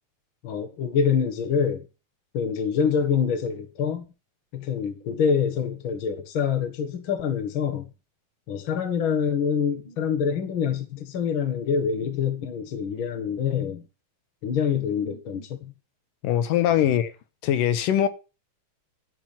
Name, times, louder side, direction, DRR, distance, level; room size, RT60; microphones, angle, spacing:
voice 1, 0.4-1.8 2.3-4.0 4.5-7.9 8.5-13.8 14.4-15.7 16.8-16.9, left 7 dB, 50° left, 1.7 m, -26 dB
voice 2, 16.2-17.1 17.4-18.1, left 10 dB, 85° left, 2.6 m, -22 dB
12.0 x 4.7 x 7.1 m
omnidirectional pair, 3.8 m